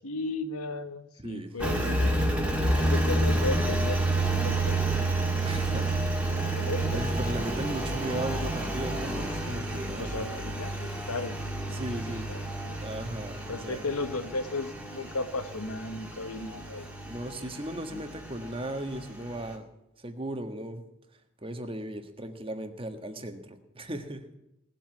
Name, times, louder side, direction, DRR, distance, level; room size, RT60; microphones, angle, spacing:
voice 1, 0.0-4.8 6.3-7.0 10.0-11.4 11.7-12.0 12.3-12.8 13.5-16.9 17.9-18.0, left 2 dB, 90° left, 10 dB, 1.4 m, -35 dB
voice 2, 1.2-1.6 5.4-5.9 6.9-10.3 11.7-12.3 12.8-13.8 17.0-19.7 20.0-20.8 21.4-24.4, right 1 dB, 25° right, 7 dB, 1.5 m, -36 dB
Engine, 1.6-19.5, right 2 dB, 5° right, 2.1 m, -30 dB
19.0 x 7.6 x 9.4 m, 0.86 s
head